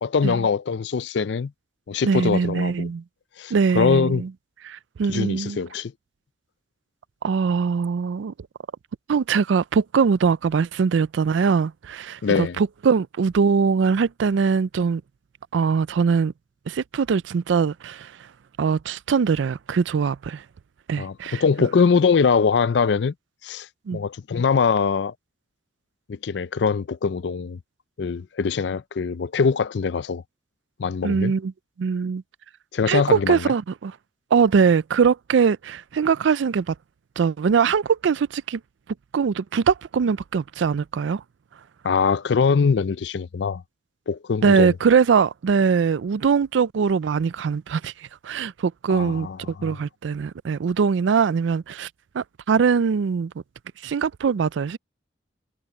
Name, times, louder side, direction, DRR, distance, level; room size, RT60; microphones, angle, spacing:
voice 1, 0.0-1.5 1.9-2.9 3.4-4.2 5.1-5.9 12.2-12.6 21.0-23.1 23.4-23.7 23.9-25.1 26.1-27.6 28.0-30.2 30.8-31.3 32.7-33.5 41.8-43.6 44.1-44.7 48.9-49.8, left 5 dB, 65° left, 0.4 m, -22 dB
voice 2, 2.0-3.0 3.5-4.3 4.7-5.6 7.2-8.3 9.1-15.0 15.5-16.3 16.7-18.1 18.6-20.4 20.9-21.7 23.9-24.0 31.0-31.5 31.8-32.2 32.9-33.9 34.3-36.7 37.2-38.6 39.1-41.2 44.4-47.9 48.2-49.3 49.6-51.9 52.1-53.3 53.8-54.8, right 6 dB, 80° right, 0.4 m, -22 dB
head